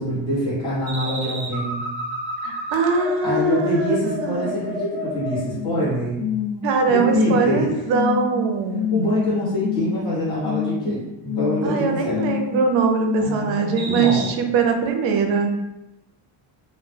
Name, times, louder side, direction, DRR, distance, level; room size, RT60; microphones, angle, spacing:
voice 1, 0.0-1.8 3.2-6.2 6.9-7.7 8.9-12.3 13.2-14.3, equal, 10° left, -9 dB, 0.7 m, -24 dB
sound 1, 0.9-5.8 6.2-6.6 7.0-7.5 7.9-8.3 8.7-9.2 9.6-10.1 10.4-10.9 11.2-11.7 12.1-12.6 12.9-13.4 13.8-14.3, left 6 dB, 45° right, 1.0 m, -28 dB
voice 2, 2.4-4.5 6.6-8.8 11.6-15.7, right 4 dB, 65° right, 4 dB, 0.5 m, -22 dB
2.1 x 2.0 x 3.2 m, 0.96 s
cardioid pair, 155°, 49 cm